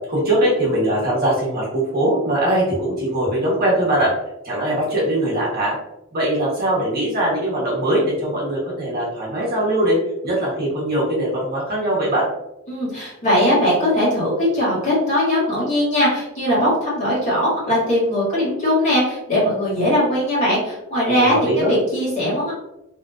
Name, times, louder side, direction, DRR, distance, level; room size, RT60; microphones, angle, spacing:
voice 1, 0.1-4.1 4.4-5.7 6.1-10.0 10.2-12.3 21.2-21.7, right 1 dB, 50° right, -5 dB, 1.0 m, -21 dB
voice 2, 12.7-22.5, equal, 35° left, -7 dB, 1.5 m, -20 dB
3.0 x 2.5 x 2.3 m, 0.89 s
head